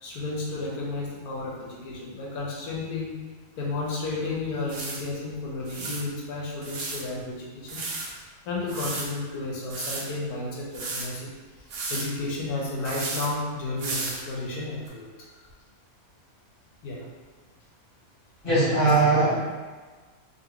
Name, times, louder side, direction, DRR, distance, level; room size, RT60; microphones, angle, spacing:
voice 1, 0.0-3.1 3.6-7.8 8.1-8.2 8.5-11.3 11.9-15.1 16.8-17.0, left 2 dB, 85° left, -4 dB, 1.2 m, -32 dB
sound 1, 3.9-4.0 4.7-5.0 5.7-6.0 6.6-7.0 7.7-8.1 8.7-9.1 9.7-10.0 10.7-11.1 11.7-12.1 12.8-13.3 13.8-14.2 14.9-15.0, right 3 dB, 75° right, 1.1 m, -33 dB
voice 2, 18.4-19.4, right 2 dB, 40° left, -11 dB, 1.3 m, -20 dB
3.0 x 2.5 x 2.9 m, 1.4 s
omnidirectional pair, 1.6 m